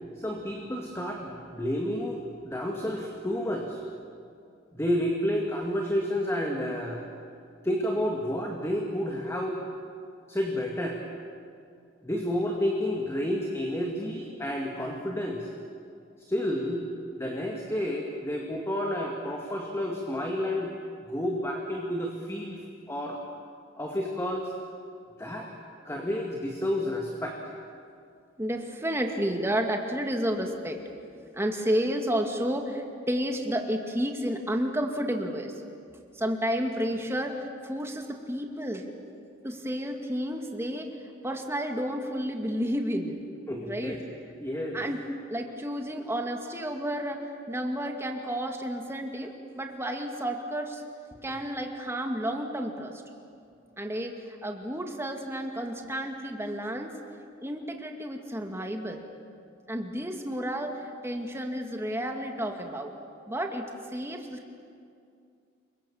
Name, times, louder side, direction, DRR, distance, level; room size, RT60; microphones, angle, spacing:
voice 1, 0.2-3.8 4.7-7.0 7.6-9.6 10.3-11.0 12.0-15.5 16.3-16.9 17.2-20.7 21.1-22.6 22.9-23.2 23.8-24.5 25.2-25.5 25.8-27.4 43.5-44.0 44.4-44.8, left 1 dB, 15° left, 0 dB, 2.1 m, -30 dB
voice 2, 28.4-30.8 31.3-35.5 36.2-38.9 39.4-40.9 41.2-44.0 44.7-45.0 45.3-50.8 51.2-53.0 53.8-56.9 57.4-59.0 59.7-62.9 63.3-63.7 63.9-64.5, equal, 15° right, 3 dB, 2.2 m, -31 dB
28.5 x 24.0 x 7.2 m, 2.4 s
head